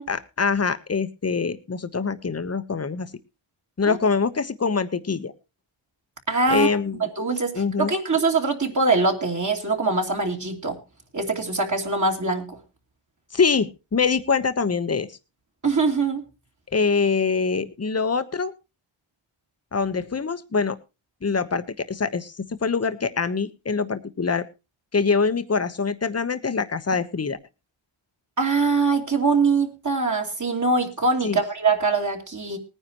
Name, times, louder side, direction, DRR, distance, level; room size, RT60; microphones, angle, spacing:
voice 1, 0.1-3.1 3.8-5.3 6.5-7.1 7.5-7.9 13.3-15.1 16.7-18.5 19.7-20.8 21.2-24.5 24.9-27.4 31.2-31.4, left 5 dB, 30° left, 12 dB, 1.1 m, -24 dB
voice 2, 6.3-6.7 7.0-7.5 7.8-10.8 11.1-12.6 15.6-16.2 28.4-32.6, right 3 dB, 35° right, 1 dB, 2.8 m, -23 dB
19.5 x 10.0 x 3.1 m, 0.28 s
cardioid pair, 85°, 49 cm